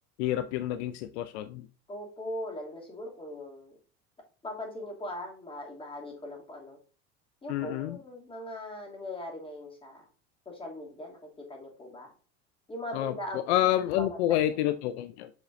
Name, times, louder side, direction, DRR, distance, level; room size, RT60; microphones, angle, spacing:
voice 1, 0.2-1.7 7.5-8.0 12.9-13.1 13.5-15.3, left 13 dB, 90° left, 12 dB, 0.6 m, -28 dB
voice 2, 1.9-3.7 4.4-6.8 7.4-10.0 10.5-12.1 12.7-13.6 14.0-14.6, left 1 dB, 15° left, -1 dB, 2.6 m, -40 dB
7.8 x 5.1 x 2.6 m, 0.39 s
supercardioid pair, 120°, 32 cm